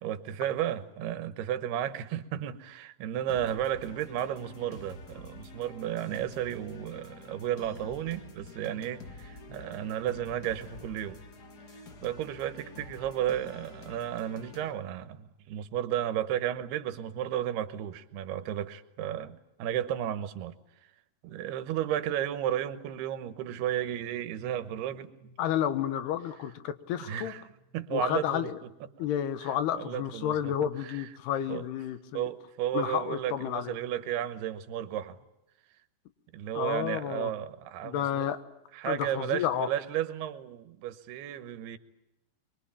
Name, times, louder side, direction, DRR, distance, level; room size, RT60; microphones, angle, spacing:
voice 1, 0.0-11.2 12.0-20.5 21.2-25.3 27.0-27.4 27.7-28.5 29.0-29.1 29.4-30.5 30.8-31.1 31.5-31.6 32.1-35.2 36.3-38.3 38.7-41.8, right 11 dB, 90° right, 3.2 m, -33 dB
sound 1, 3.3-14.7, left 3 dB, 45° left, 1.4 m, -48 dB
voice 2, 25.4-27.3 27.9-28.6 29.0-32.3 32.7-33.7 36.5-37.3 37.8-38.4 38.8-39.7, left 10 dB, 90° left, 3.3 m, -31 dB
24.0 x 23.0 x 8.7 m
omnidirectional pair, 4.5 m